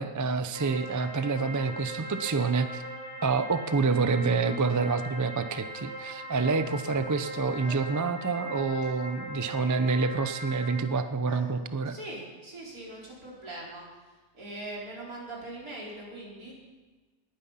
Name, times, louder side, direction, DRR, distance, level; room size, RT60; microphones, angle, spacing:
voice 1, 0.0-2.8 3.2-11.9, right 4 dB, 30° right, 10 dB, 0.3 m, -27 dB
sound 1, 0.5-10.8, right 1 dB, 15° right, 3.6 m, -40 dB
voice 2, 7.6-7.9 8.8-8.9 11.2-11.5 11.8-16.6, right 1 dB, 75° right, -4 dB, 4.6 m, -42 dB
19.5 x 9.8 x 5.7 m, 1.3 s
omnidirectional pair, 1.5 m